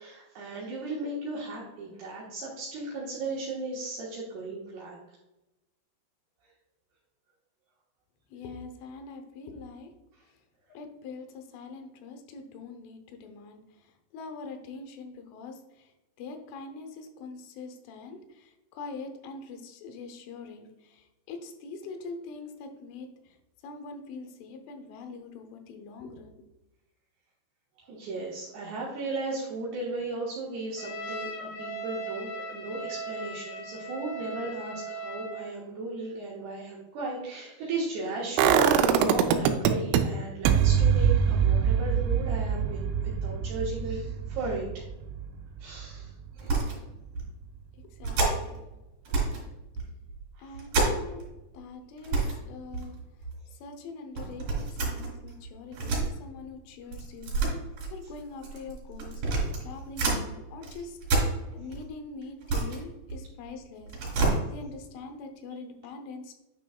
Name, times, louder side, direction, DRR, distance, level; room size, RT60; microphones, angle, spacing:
voice 1, 0.0-5.0 27.9-42.9 43.2-44.8 45.6-46.1 46.4-46.7 50.4-50.6, right 2 dB, 70° right, -6 dB, 3.1 m, -36 dB
voice 2, 8.3-9.9 10.7-23.4 23.6-26.3 47.7-48.8 50.4-51.2 51.5-52.2 52.5-53.0 53.5-66.3, left 4 dB, 85° left, 6 dB, 3.4 m, -43 dB
Trumpet, 30.8-35.5, right 2 dB, 70° left, 2.7 m, -38 dB
sound 1, 38.4-40.0 40.5-46.3 46.6-46.7, right 8 dB, 85° right, 3.1 m, -24 dB
sound 2, 46.4-46.8 47.1-47.3 48.0-48.6 49.1-49.5 49.8-51.3 51.6-51.7 52.0-52.4 52.7-53.4 54.2-56.1 56.9-60.2 60.6-61.8 62.2-63.5 63.8-64.4, right 3 dB, 50° right, 4.0 m, -29 dB
10.0 x 6.1 x 2.3 m, 0.98 s
omnidirectional pair, 5.4 m